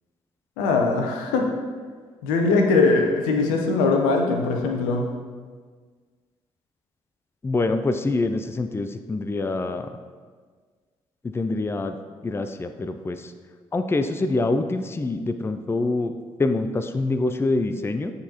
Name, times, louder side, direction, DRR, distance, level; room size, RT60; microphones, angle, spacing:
voice 1, 0.6-1.5 2.2-5.1, left 3 dB, 85° left, 2 dB, 0.6 m, -21 dB
voice 2, 7.4-9.9 11.3-12.0 12.2-13.3 13.7-16.1 16.4-18.1, left 2 dB, 20° left, 9 dB, 0.4 m, -25 dB
8.5 x 3.9 x 2.9 m, 1.5 s
hypercardioid pair, 45°, 13 cm